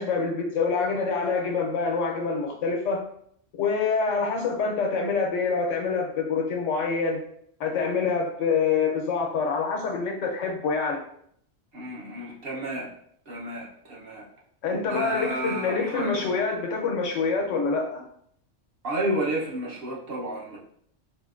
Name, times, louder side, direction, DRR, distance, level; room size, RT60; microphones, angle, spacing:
voice 1, 0.0-3.0 3.6-7.2 7.6-11.0 14.6-18.0, left 4 dB, 80° left, 1 dB, 1.1 m, -26 dB
voice 2, 11.7-12.9 13.3-14.2 14.9-16.3 18.8-20.6, right 1 dB, 55° right, -3 dB, 1.0 m, -31 dB
4.9 x 2.6 x 2.4 m, 0.66 s
omnidirectional pair, 1.3 m